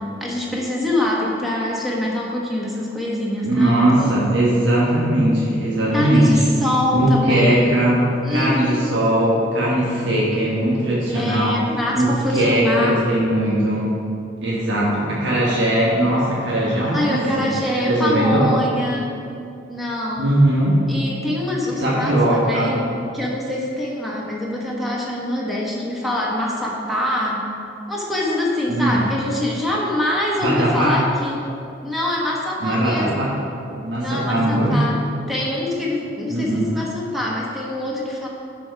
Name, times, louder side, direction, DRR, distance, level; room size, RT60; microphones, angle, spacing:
voice 1, 0.2-4.1 5.9-7.7 8.2-8.9 11.1-13.0 16.8-19.2 19.7-20.3 20.9-27.5 27.9-31.4 31.8-33.3 34.0-38.3, left 1 dB, ahead, -4 dB, 1.3 m, -24 dB
voice 2, 3.4-6.5 6.9-11.6 11.9-13.9 14.4-17.5 17.8-18.5 20.2-20.8 21.8-22.7 28.7-29.0 30.4-31.0 32.6-33.4 33.8-34.8 36.3-36.7, right 1 dB, 90° right, -6 dB, 1.4 m, -19 dB
10.5 x 4.7 x 4.7 m, 2.6 s
head